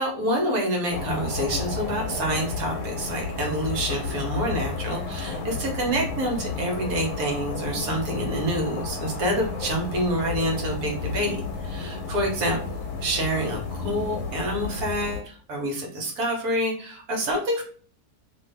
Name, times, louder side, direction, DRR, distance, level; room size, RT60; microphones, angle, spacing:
voice 1, 0.0-12.6 13.0-17.6, right 1 dB, 70° right, 0 dB, 1.3 m, -27 dB
sound 1, 0.9-15.2, left 4 dB, 80° left, 1.1 m, -32 dB
2.6 x 2.6 x 3.2 m, 0.43 s
omnidirectional pair, 1.7 m